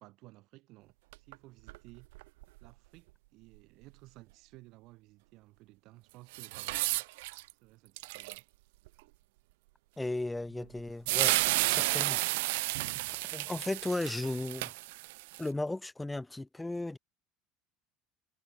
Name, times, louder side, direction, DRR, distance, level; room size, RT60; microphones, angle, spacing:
voice 1, 0.0-2.1 2.6-7.0 7.6-8.4 10.4-10.9, right 20 dB, 60° right, 6.8 m, -56 dB
sound 1, 1.1-1.3 1.7-1.8 2.1-2.7 6.3-7.5 8.0-8.4 8.9-9.0 10.8-10.9 11.1-15.4, right 22 dB, 90° right, 0.8 m, -32 dB
voice 2, 10.0-11.4 11.6-12.2 13.3-14.7 15.4-17.0, left 2 dB, 10° left, 1.2 m, -35 dB
supercardioid pair, 130°, 0 cm